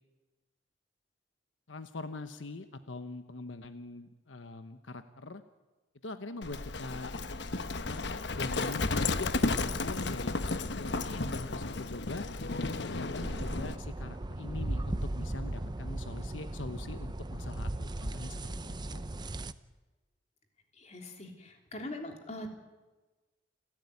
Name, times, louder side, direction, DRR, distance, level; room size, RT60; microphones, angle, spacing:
voice 1, 1.7-5.4 6.0-7.2 7.8-10.4 10.7-12.3 12.6-19.1, left 2 dB, 90° left, 9 dB, 1.1 m, -43 dB
Livestock farm animals working animals, 6.4-13.8, left 3 dB, 65° left, 1.1 m, -33 dB
sound 1, 13.2-19.5, right 1 dB, 25° right, 0.7 m, -37 dB
voice 2, 20.8-22.5, left 1 dB, 35° left, 3 dB, 3.3 m, -42 dB
29.5 x 12.5 x 9.8 m, 1.2 s
head